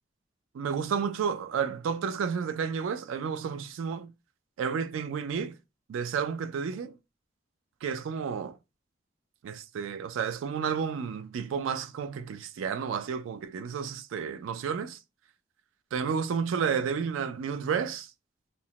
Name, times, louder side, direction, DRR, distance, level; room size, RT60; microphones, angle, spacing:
voice 1, 0.5-4.1 4.6-5.6 5.9-7.0 7.8-8.6 9.4-15.0 15.9-18.1, right 6 dB, 80° right, 0.3 m, -31 dB
2.9 x 2.1 x 2.8 m
head